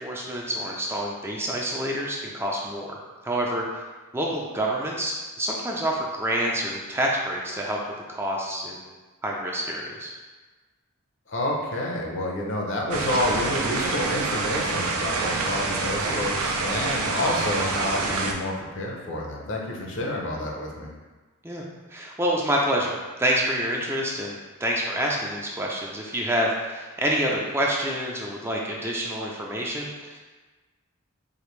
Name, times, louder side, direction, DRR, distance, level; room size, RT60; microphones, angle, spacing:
voice 1, 0.0-3.0 3.2-3.8 4.1-7.8 8.1-8.9 9.2-10.1 16.0-16.2 21.4-21.6 21.9-30.2, right 1 dB, 10° right, -2 dB, 0.4 m, -27 dB
voice 2, 11.3-20.9, left 1 dB, 60° left, -1 dB, 0.7 m, -29 dB
sound 1, 12.9-18.3, right 3 dB, 90° right, 0.5 m, -27 dB
4.9 x 2.5 x 3.1 m, 1.3 s
head